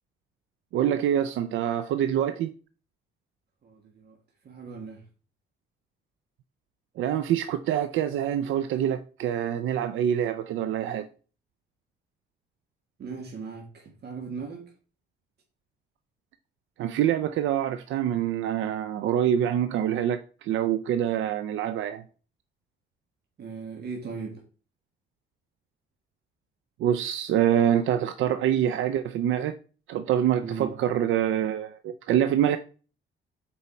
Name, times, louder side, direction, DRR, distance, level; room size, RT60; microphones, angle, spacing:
voice 1, 0.7-2.5 7.0-11.1 16.8-22.0 26.8-29.6 29.9-32.6, right 10 dB, 80° right, 0.5 m, -25 dB
voice 2, 3.6-4.2 4.4-5.0 13.0-14.7 23.4-24.4 30.4-30.8, right 5 dB, 55° right, 1.6 m, -38 dB
6.9 x 4.7 x 4.3 m
cardioid pair, 90°, 20 cm